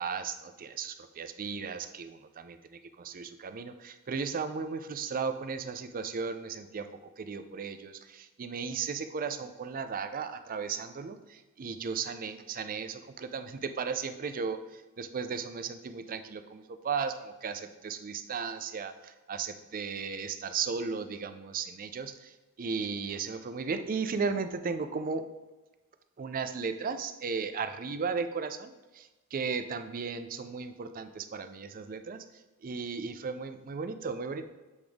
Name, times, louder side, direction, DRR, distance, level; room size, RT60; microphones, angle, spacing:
voice 1, 0.0-2.6 3.0-6.9 7.2-22.3 22.6-25.2 26.2-32.2 32.6-34.4, right 5 dB, 40° right, 10 dB, 0.4 m, -35 dB
8.0 x 5.1 x 3.5 m, 1.2 s
head